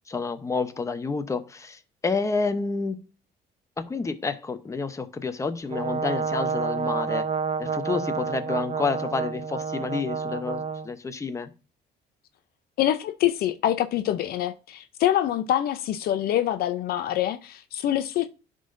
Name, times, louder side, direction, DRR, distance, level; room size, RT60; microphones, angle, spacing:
voice 1, 0.1-3.0 3.8-7.3 7.6-11.5, left 4 dB, 20° left, 0.8 m, -29 dB
Brass instrument, 5.7-10.9, right 6 dB, 40° right, 0.7 m, -29 dB
voice 2, 12.8-18.3, left 12 dB, 65° left, 0.5 m, -25 dB
11.0 x 3.9 x 2.6 m
cardioid pair, 110°, 17 cm